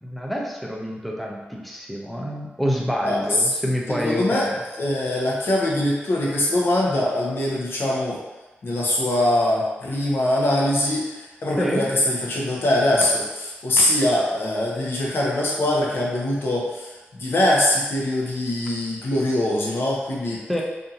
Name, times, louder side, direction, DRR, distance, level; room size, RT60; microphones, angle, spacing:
voice 1, 0.0-4.6 11.6-11.9 20.5-20.6, equal, ahead, -2 dB, 0.6 m, -27 dB
voice 2, 3.0-3.5 3.9-4.5 4.7-8.2 8.6-20.4, left 1 dB, 65° left, -4 dB, 0.8 m, -22 dB
2.7 x 2.6 x 2.4 m, 1.1 s
cardioid pair, 50°, 4 cm